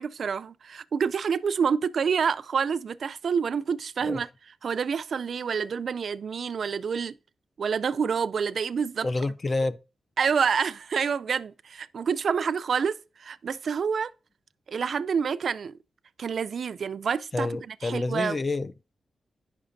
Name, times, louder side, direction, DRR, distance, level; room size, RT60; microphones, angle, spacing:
voice 1, 0.0-4.3 4.6-7.1 7.6-9.1 10.2-14.1 14.7-15.7 16.2-18.4, right 6 dB, 60° right, 0.3 m, -28 dB
voice 2, 9.0-9.8 17.3-18.7, left 3 dB, 30° left, 0.3 m, -28 dB
9.7 x 5.7 x 2.5 m
wide cardioid pair, 140°, 0 cm